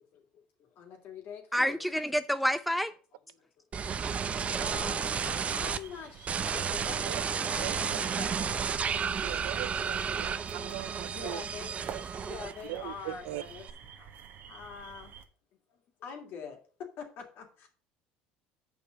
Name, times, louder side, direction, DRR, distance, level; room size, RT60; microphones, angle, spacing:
voice 1, 0.1-1.8 4.6-7.1 7.5-8.6 11.1-11.7 12.2-13.7 14.0-14.1 14.5-15.1 15.7-16.6 17.0-17.7, left 6 dB, 60° left, 2.7 m, -44 dB
voice 2, 1.5-2.9, equal, ahead, 0.5 m, -28 dB
sound 1, 3.7-5.8 6.3-12.8 13.1-13.7, right 6 dB, 35° right, 0.7 m, -32 dB
sound 2, 4.3-15.3, right 8 dB, 55° right, 1.3 m, -50 dB
voice 3, 9.2-11.4 11.9-12.0 12.7-13.4, right 19 dB, 80° right, 0.4 m, -40 dB
7.0 x 5.4 x 6.5 m
supercardioid pair, 90°, 4 cm